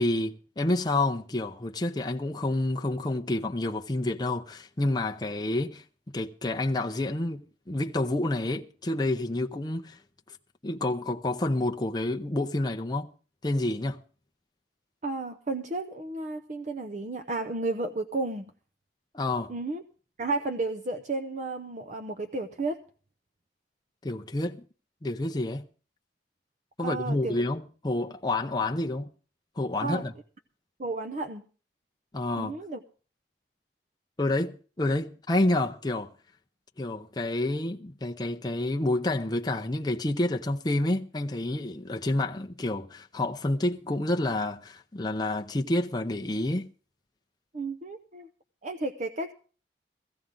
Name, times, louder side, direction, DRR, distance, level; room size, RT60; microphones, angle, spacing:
voice 1, 0.0-5.8 6.1-10.0 10.6-13.1 13.4-14.0 19.1-19.5 24.0-24.6 25.0-25.6 26.8-29.1 29.6-30.1 32.1-32.5 34.2-36.1 36.8-46.7, left 2 dB, 25° left, 0.6 m, -29 dB
voice 2, 15.0-18.5 19.5-19.8 20.2-22.8 26.8-27.4 29.8-30.0 30.8-31.4 32.4-32.8 47.5-48.3 48.6-49.3, right 2 dB, 40° right, 0.7 m, -32 dB
15.5 x 15.5 x 3.8 m
head